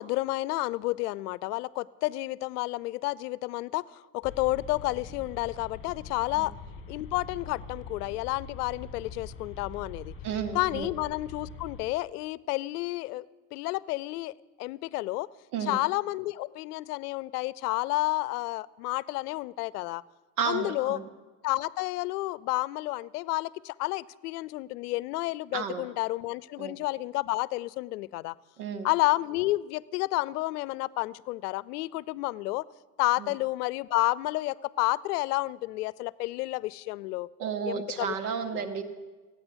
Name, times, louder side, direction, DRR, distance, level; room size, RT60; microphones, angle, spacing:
voice 1, 0.0-3.8 4.1-6.5 6.9-10.1 10.5-13.2 13.5-15.3 15.7-20.0 20.5-21.0 21.4-28.3 28.8-32.6 33.0-37.3 37.7-38.1 38.5-38.7, left 19 dB, 85° left, 0.6 m, -30 dB
sound 1, 4.2-12.0, left 4 dB, 25° left, 1.9 m, -44 dB
voice 2, 10.2-10.9 15.5-15.8 20.4-21.1 25.5-25.9 26.6-26.8 28.6-28.9 33.2-33.3 37.4-38.8, right 6 dB, 75° right, 2.0 m, -32 dB
15.5 x 9.6 x 8.0 m
supercardioid pair, 115°, 45 cm